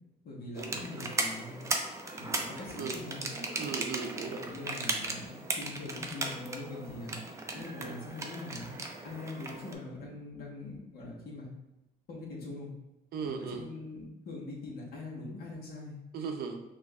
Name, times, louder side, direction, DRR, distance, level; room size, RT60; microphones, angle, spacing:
voice 1, 0.2-1.6 2.2-3.3 4.4-7.2 7.5-8.7 9.0-11.5 12.1-12.7 13.2-15.9, left 2 dB, 65° left, -5 dB, 1.1 m, -42 dB
sound 1, 0.6-9.7, right 2 dB, 20° right, 0.4 m, -37 dB
voice 2, 3.6-4.4 7.8-7.9 13.1-13.6 16.1-16.6, right 5 dB, 70° right, 5 dB, 0.6 m, -37 dB
5.9 x 2.5 x 2.3 m, 0.96 s
cardioid pair, 150°, 16 cm